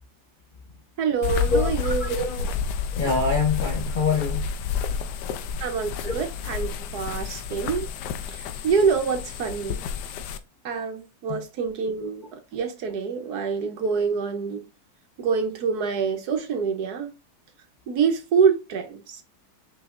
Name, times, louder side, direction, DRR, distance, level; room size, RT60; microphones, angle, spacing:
voice 1, 1.0-2.3 5.6-7.9 8.3-9.8 10.6-12.3 12.5-14.6 15.2-17.1 17.9-19.2, right 6 dB, 65° right, 1.2 m, -26 dB
sound 1, 1.2-10.4, left 7 dB, 75° left, 1.1 m, -30 dB
voice 2, 1.5-2.5 2.9-4.5 6.0-6.2 11.3-11.4, left 4 dB, 50° left, 0.6 m, -26 dB
6.1 x 3.4 x 2.5 m
omnidirectional pair, 2.0 m